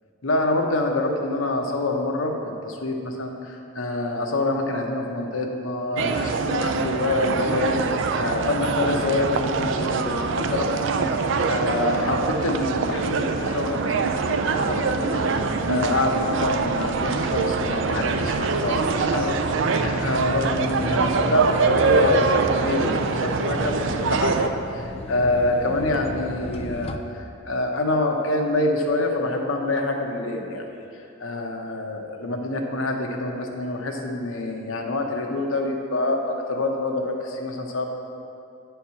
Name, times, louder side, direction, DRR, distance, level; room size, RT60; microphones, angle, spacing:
voice 1, 0.2-7.8 8.1-30.7 30.9-37.9, left 2 dB, 75° left, 2 dB, 0.9 m, -26 dB
sound 1, 6.0-24.5, right 4 dB, 65° right, 0.4 m, -24 dB
sound 2, 15.3-27.0, left 2 dB, 30° left, 0.4 m, -37 dB
9.5 x 4.5 x 5.7 m, 2.7 s
head